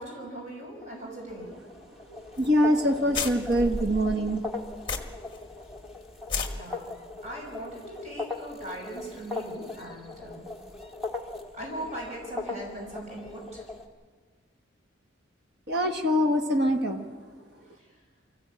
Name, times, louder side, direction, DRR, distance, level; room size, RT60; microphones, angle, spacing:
voice 1, 0.0-1.5 6.5-6.9 7.2-10.5 11.5-13.7 17.6-18.0, right 1 dB, 35° right, -3 dB, 5.9 m, -40 dB
sound 1, 0.8-13.9, left 3 dB, ahead, 1.5 m, -40 dB
voice 2, 2.1-4.4 15.7-17.0, equal, 55° right, 4 dB, 1.4 m, -24 dB
sound 2, 2.4-2.5 2.8-2.9 3.1-5.4 5.7-5.8 6.2-6.5, left 4 dB, 25° left, 1.4 m, -32 dB
24.5 x 15.0 x 8.7 m, 1.5 s
head